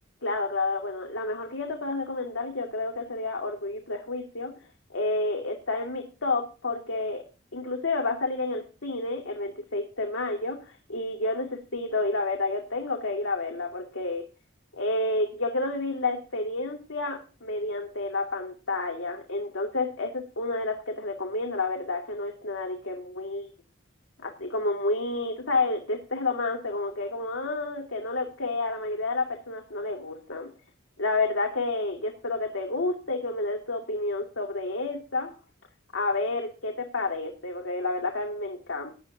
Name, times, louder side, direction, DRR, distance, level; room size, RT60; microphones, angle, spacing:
voice 1, 0.2-4.5 4.9-7.2 7.5-14.2 14.8-23.5 24.2-30.5 31.0-35.3 35.9-38.9, left 2 dB, 85° left, 1 dB, 2.2 m, -30 dB
16.0 x 10.5 x 2.7 m, 0.33 s
head